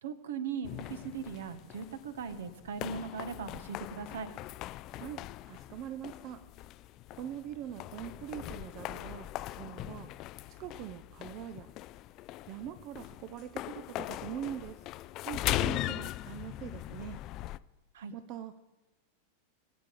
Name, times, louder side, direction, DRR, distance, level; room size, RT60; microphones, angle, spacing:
voice 1, 0.0-4.3 17.9-18.1, right 6 dB, 60° right, 11 dB, 1.3 m, -39 dB
sound 1, 0.6-17.6, left 15 dB, 40° left, 0.4 m, -40 dB
voice 2, 4.9-6.4 7.2-10.1 10.5-11.7 12.5-14.8 15.2-17.2 18.1-18.6, right 11 dB, 40° right, 9 dB, 0.7 m, -43 dB
22.0 x 9.0 x 5.5 m, 1.1 s
figure-of-eight pair, 90°, 0 cm